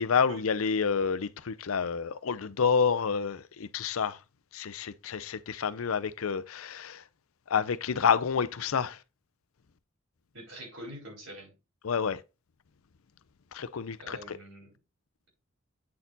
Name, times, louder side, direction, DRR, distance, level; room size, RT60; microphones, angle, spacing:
voice 1, 0.0-4.2 4.5-7.1 7.5-9.0 11.8-12.2 13.5-14.4, left 6 dB, 90° left, 0.5 m, -29 dB
voice 2, 10.3-11.5 14.0-14.7, right 1 dB, 70° right, 4.6 m, -44 dB
8.5 x 4.4 x 3.9 m
head